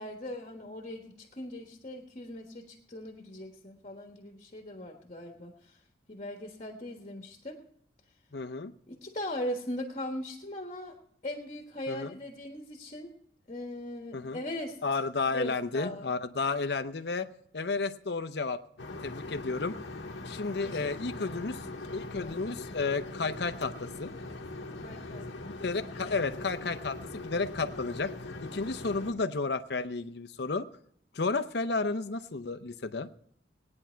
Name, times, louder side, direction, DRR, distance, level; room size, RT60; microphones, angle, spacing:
voice 1, 0.0-5.8 6.1-7.6 8.9-11.0 11.2-13.1 13.5-14.8 15.3-16.1 20.6-22.4 24.8-25.3 25.9-26.1, left 1 dB, 35° left, 2 dB, 1.4 m, -40 dB
voice 2, 8.3-8.7 11.9-12.2 14.1-14.4 14.8-17.3 17.5-18.6 19.0-19.7 20.2-21.6 21.9-24.1 25.6-28.1 28.4-30.6 31.1-33.1, left 4 dB, 65° left, 9 dB, 0.7 m, -32 dB
sound 1, 18.8-29.1, left 2 dB, 85° left, 1.2 m, -41 dB
18.0 x 9.7 x 4.5 m, 0.69 s
head